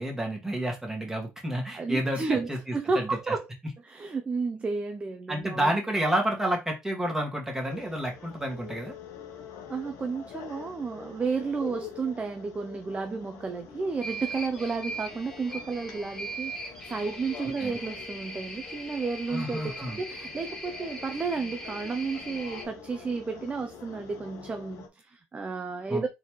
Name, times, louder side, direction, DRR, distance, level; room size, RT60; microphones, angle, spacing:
voice 1, 0.0-2.6 2.9-3.4 5.3-8.9 17.6-17.7 19.3-20.0 25.9-26.1, right 1 dB, 10° right, 2.0 m, -30 dB
voice 2, 1.7-3.5 3.8-5.7 9.7-26.1, right 4 dB, 25° right, 0.6 m, -32 dB
sound 1, 7.7-24.9, left 7 dB, 65° left, 1.2 m, -46 dB
sound 2, 14.0-22.6, right 1 dB, 10° left, 2.0 m, -40 dB
3.9 x 3.8 x 3.1 m
supercardioid pair, 90°, 5 cm